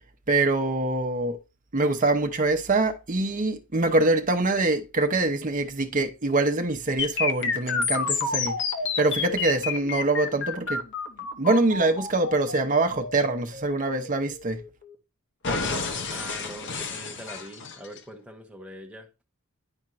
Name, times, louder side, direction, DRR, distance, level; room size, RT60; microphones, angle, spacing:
voice 1, 0.3-1.4 1.7-8.6 9.0-10.8 11.4-14.6, right 2 dB, 35° right, 0.8 m, -24 dB
sound 1, 7.0-14.9 15.4-18.0, left 4 dB, 55° left, 0.8 m, -30 dB
voice 2, 16.1-19.1, equal, 5° right, 1.0 m, -42 dB
10.5 x 4.4 x 2.5 m
head